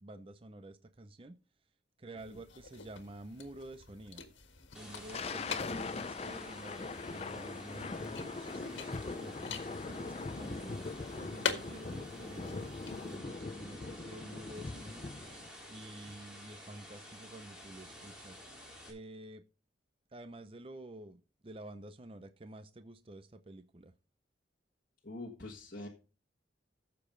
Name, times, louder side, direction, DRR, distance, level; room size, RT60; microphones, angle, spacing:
voice 1, 0.0-1.4 2.0-4.2 4.7-10.8 11.1-15.1 15.7-18.4 18.9-19.4 20.1-23.9, right 1 dB, 30° right, 11 dB, 0.6 m, -50 dB
sound 1, 2.2-13.2, left 5 dB, 80° left, 1.6 m, -45 dB
Thunder, 4.7-15.5, left 3 dB, 30° left, 0.4 m, -41 dB
sound 2, 4.7-18.9, equal, 5° right, 3.8 m, -51 dB
voice 2, 25.0-25.9, left 2 dB, 50° left, -2 dB, 1.6 m, -44 dB
15.0 x 6.9 x 3.8 m, 0.33 s
head